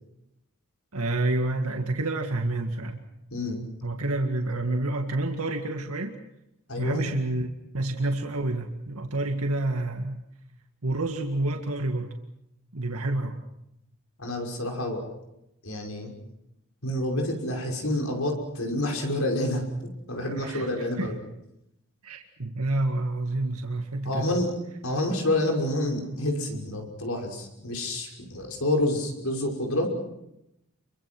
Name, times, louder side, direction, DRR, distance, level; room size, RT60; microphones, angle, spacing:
voice 1, 0.9-3.0 3.8-6.2 6.8-7.5 7.7-10.2 10.8-12.2 12.7-13.4 20.3-20.7 21.0-21.1 22.0-24.4, right 2 dB, 80° right, 4 dB, 2.0 m, -28 dB
voice 2, 3.3-3.6 4.0-4.1 6.7-7.1 14.2-15.0 15.6-16.1 16.8-19.7 20.1-21.2 24.0-24.5 24.8-29.9, left 1 dB, 70° left, 2 dB, 5.8 m, -28 dB
29.0 x 24.0 x 6.2 m, 0.85 s
head